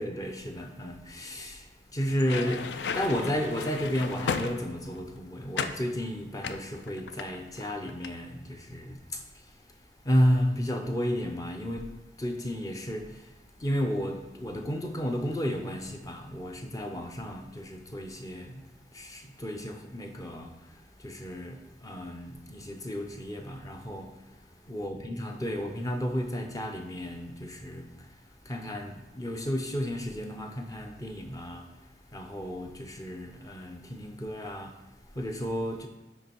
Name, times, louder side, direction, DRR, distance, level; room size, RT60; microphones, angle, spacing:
voice 1, 0.0-35.9, equal, 20° left, 4 dB, 0.6 m, -33 dB
sound 1, 2.1-5.0 5.5-5.8 6.4-7.6 7.9-8.2, left 5 dB, 75° left, 0.4 m, -34 dB
9.2 x 3.1 x 4.5 m, 1.0 s
head